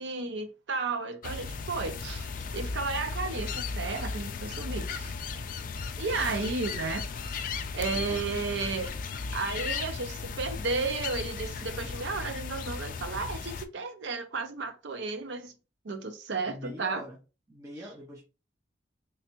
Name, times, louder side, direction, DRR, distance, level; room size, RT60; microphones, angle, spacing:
voice 1, 0.0-5.1 6.0-7.4 7.7-8.9 9.3-15.5 15.8-17.0, right 4 dB, 70° right, 0.6 m, -33 dB
sound 1, 1.2-13.6, left 4 dB, 45° left, 0.4 m, -36 dB
voice 2, 7.9-8.2 16.5-17.2 17.5-18.2, equal, 15° right, 0.7 m, -44 dB
3.3 x 3.1 x 2.9 m
head